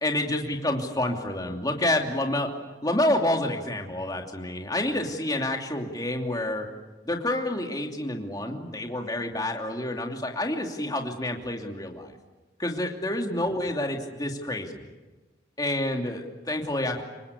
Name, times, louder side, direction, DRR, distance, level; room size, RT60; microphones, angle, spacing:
voice 1, 0.0-2.5 2.8-6.7 7.0-12.1 12.6-14.9 15.6-17.0, left 1 dB, 20° left, 2 dB, 2.8 m, -28 dB
28.0 x 24.5 x 8.4 m, 1.2 s
head